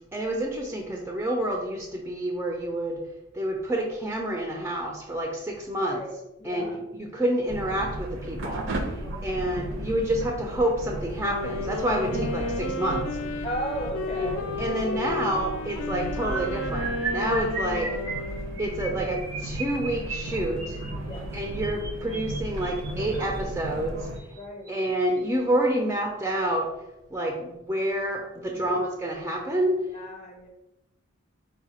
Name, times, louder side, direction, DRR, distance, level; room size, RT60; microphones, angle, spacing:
voice 1, 0.1-3.0 3.3-6.0 6.4-8.7 9.2-13.4 14.2-14.3 14.6-18.0 18.6-20.8 21.3-24.1 24.7-26.7 27.1-29.8, right 1 dB, 10° right, 0 dB, 0.4 m, -28 dB
voice 2, 5.9-6.8 9.0-9.6 12.4-12.5 13.4-15.1 21.0-21.3 24.4-24.8 27.4-27.5 28.5-28.8 29.9-30.5, equal, 30° left, 0 dB, 0.7 m, -36 dB
sound 1, 7.5-24.2, right 1 dB, 60° right, 0.6 m, -35 dB
Wind instrument woodwind instrument, 11.1-18.8, left 3 dB, 70° left, 0.4 m, -33 dB
sound 2, 16.2-23.4 24.1-24.4 24.7-24.9 25.2-25.4, right 4 dB, 85° right, 1.1 m, -36 dB
4.7 x 2.2 x 4.2 m, 0.89 s
head